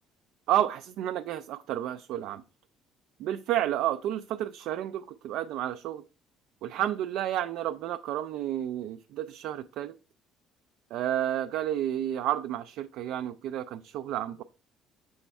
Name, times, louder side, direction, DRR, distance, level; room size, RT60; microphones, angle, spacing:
voice 1, 0.5-2.4 3.2-6.0 6.6-9.9 10.9-14.4, right 12 dB, 70° right, 9 dB, 0.3 m, -31 dB
7.0 x 4.2 x 3.3 m, 0.33 s
cardioid pair, 165°, 0 cm